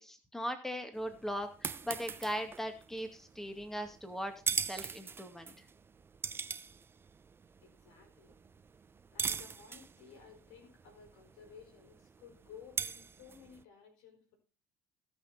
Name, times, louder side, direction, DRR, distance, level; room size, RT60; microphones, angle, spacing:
voice 1, 0.0-5.7, equal, 5° left, 6 dB, 2.2 m, -39 dB
sound 1, 1.0-13.6, right 5 dB, 30° right, 0.8 m, -42 dB
voice 2, 7.6-8.4 9.1-14.4, left 7 dB, 75° left, 4 dB, 4.7 m, -56 dB
18.0 x 6.4 x 4.3 m, 0.36 s
hypercardioid pair, 70°, 8 cm